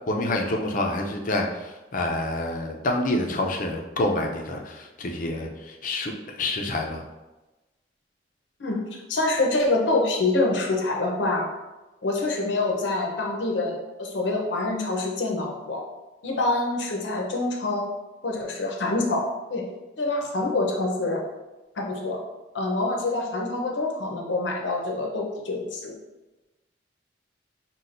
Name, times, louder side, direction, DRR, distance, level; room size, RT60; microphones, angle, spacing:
voice 1, 0.1-7.0, left 1 dB, 45° left, 2 dB, 0.5 m, -27 dB
voice 2, 9.1-11.5 12.0-15.8 16.2-17.9 18.2-19.7 20.0-21.2 21.8-22.2 22.5-25.9, left 2 dB, 80° left, 0 dB, 0.7 m, -26 dB
5.8 x 2.3 x 2.5 m, 1.1 s
head